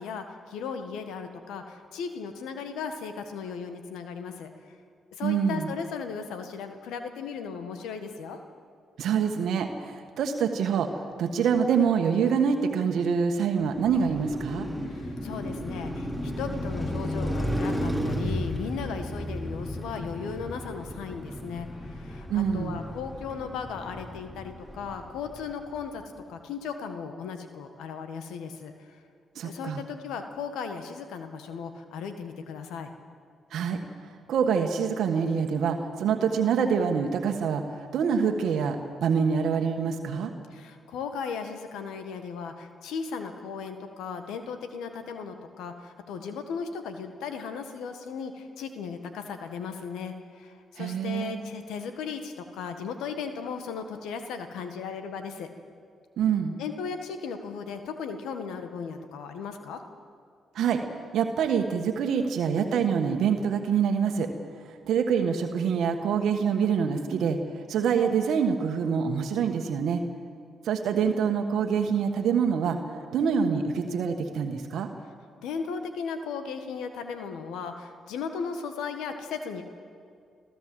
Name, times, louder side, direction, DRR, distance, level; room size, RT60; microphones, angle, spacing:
voice 1, 0.0-4.8 5.2-8.4 14.9-26.0 26.3-29.0 29.4-32.9 40.5-55.5 56.6-59.8 75.4-79.6, left 6 dB, 80° left, 7 dB, 1.6 m, -36 dB
voice 2, 5.2-5.7 9.0-14.7 22.3-22.8 29.3-29.8 33.5-33.8 34.3-40.3 50.8-51.3 56.2-56.6 60.5-60.8 61.1-64.3 64.9-67.4 67.7-70.0 70.6-72.8 73.1-74.9, right 6 dB, 75° right, 5 dB, 1.3 m, -26 dB
Car passing by, 13.5-25.8, equal, 10° left, 4.1 m, -34 dB
26.5 x 14.0 x 7.7 m, 2.2 s
supercardioid pair, 50°, 0 cm